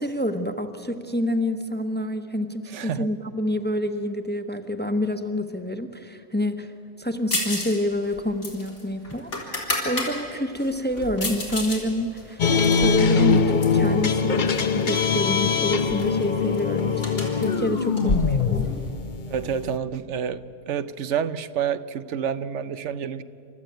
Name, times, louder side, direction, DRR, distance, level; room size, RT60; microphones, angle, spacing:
voice 1, 0.0-6.7 7.0-12.4 12.8-18.7, left 1 dB, 10° left, 7 dB, 0.8 m, -28 dB
voice 2, 2.7-3.1 18.0-18.2 19.3-23.2, right 8 dB, 80° right, 13 dB, 1.0 m, -29 dB
sound 1, 7.3-7.8 8.0-10.1 10.6-11.8 12.2-13.9 14.5-15.1 15.4-15.5 15.8-18.9, left 1 dB, 85° left, 4.4 m, -30 dB
sound 2, 12.4-19.8, left 5 dB, 45° left, 0.8 m, -22 dB
29.0 x 13.5 x 9.1 m, 2.7 s
omnidirectional pair, 1.2 m